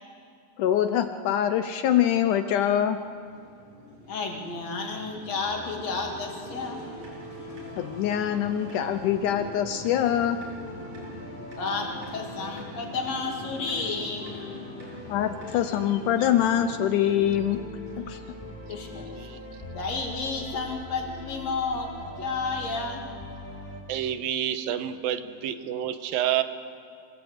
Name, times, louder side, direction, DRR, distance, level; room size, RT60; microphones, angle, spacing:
voice 1, 0.6-3.0 7.8-10.4 15.1-17.6 18.0-18.2, left 10 dB, 75° left, 9 dB, 2.0 m, -24 dB
sound 1, 2.9-19.3, equal, 35° right, 6.1 m, -45 dB
voice 2, 4.1-6.8 11.6-14.6 18.7-19.3 19.7-21.9 22.2-23.0, left 4 dB, 50° left, 1 dB, 3.5 m, -32 dB
sound 2, 5.4-23.8, left 2 dB, 10° left, 3.8 m, -42 dB
sound 3, 7.0-7.2 7.6-7.7 8.1-8.3 8.7-8.8 9.3-9.4 9.9-10.0 10.4-10.6 10.9-11.1 11.5-12.2 12.6-12.7 13.1-13.2 13.7-13.9 14.3-14.4 14.8-15.0 15.4-15.6 15.9-16.0 16.2-16.4, right 1 dB, 50° right, 8.2 m, -51 dB
voice 3, 19.1-19.4 23.9-26.4, right 11 dB, 85° right, 11 dB, 2.7 m, -28 dB
27.0 x 17.5 x 8.0 m, 2.5 s
omnidirectional pair, 4.0 m